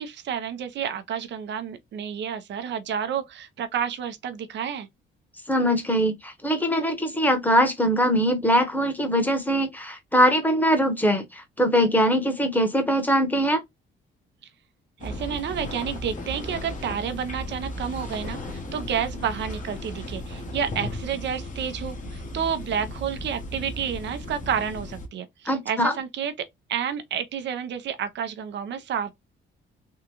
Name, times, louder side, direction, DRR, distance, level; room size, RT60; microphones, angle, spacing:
voice 1, 0.0-4.9 15.0-29.1, right 8 dB, 65° right, 0.8 m, -30 dB
voice 2, 5.5-13.6 25.5-25.9, equal, 10° left, 1.1 m, -22 dB
sound 1, 15.0-25.1, left 1 dB, 40° left, 1.2 m, -35 dB
3.6 x 2.4 x 2.9 m
cardioid pair, 90°, 20 cm